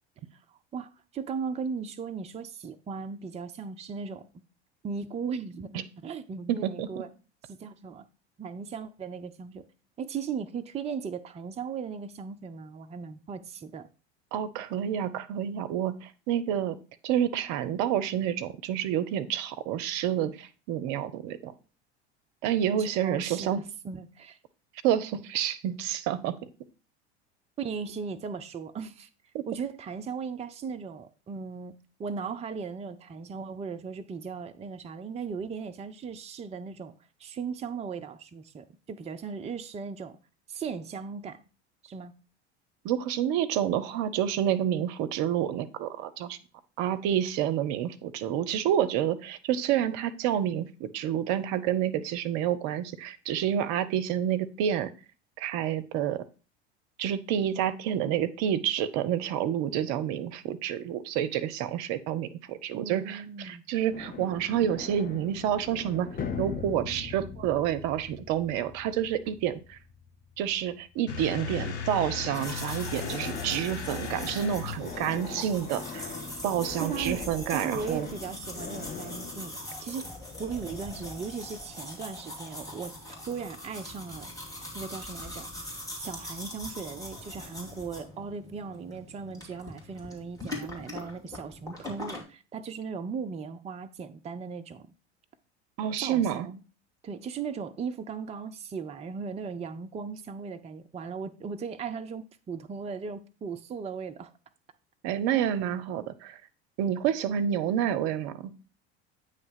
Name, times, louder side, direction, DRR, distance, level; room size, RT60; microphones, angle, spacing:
voice 1, 0.7-4.3 4.8-7.1 7.5-8.0 8.4-9.6 10.0-13.9 23.0-24.4 27.6-29.1 29.5-31.7 32.0-36.9 37.2-40.2 40.5-41.4 41.8-42.1 62.7-63.6 76.8-77.2 77.5-80.1 80.4-84.3 84.7-85.5 86.0-94.9 96.0-96.6 97.0-104.3, right 5 dB, 20° right, 0.6 m, -37 dB
voice 2, 6.5-7.0 14.3-16.8 17.0-21.5 22.4-23.6 24.8-26.3 29.3-29.4 42.8-46.4 46.8-54.9 55.4-56.3 57.0-66.1 66.4-69.8 70.4-76.1 76.4-78.1 95.8-96.5 105.0-106.4 106.8-108.5, right 10 dB, 50° right, 0.7 m, -29 dB
sound 1, 63.9-70.9 71.2-79.5, left 6 dB, 25° left, 1.1 m, -41 dB
sound 2, 71.1-75.0, left 6 dB, 75° left, 1.0 m, -37 dB
sound 3, 72.3-92.2, left 1 dB, 10° left, 2.7 m, -42 dB
9.0 x 3.2 x 5.8 m
figure-of-eight pair, 75°, 34 cm